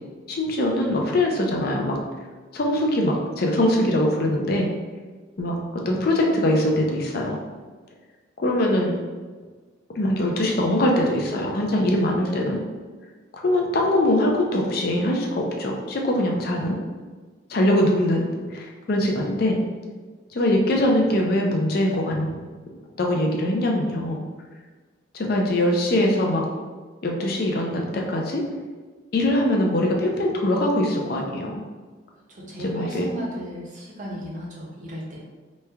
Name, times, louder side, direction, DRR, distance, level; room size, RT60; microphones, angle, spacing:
voice 1, 0.3-2.0 2.5-4.7 5.4-5.6 5.9-7.4 8.4-8.9 10.0-12.6 13.3-16.8 17.5-19.6 20.3-22.4 23.0-24.2 25.1-26.4 27.0-28.4 29.1-31.6 32.6-33.1, left 1 dB, 50° left, 0 dB, 0.4 m, -22 dB
voice 2, 32.3-35.2, equal, 40° right, -4 dB, 0.7 m, -35 dB
3.1 x 2.2 x 3.4 m, 1.4 s
head